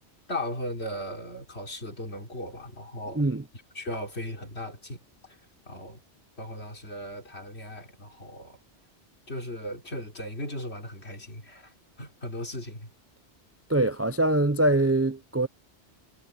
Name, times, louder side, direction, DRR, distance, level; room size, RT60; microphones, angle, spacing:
voice 1, 0.3-3.3 3.7-5.0 5.7-6.0 6.4-8.6 9.3-11.7 12.0-12.9, left 1 dB, 65° left, 3.9 m, -37 dB
voice 2, 13.7-15.5, right 1 dB, 20° right, 0.4 m, -23 dB
omnidirectional pair, 1.2 m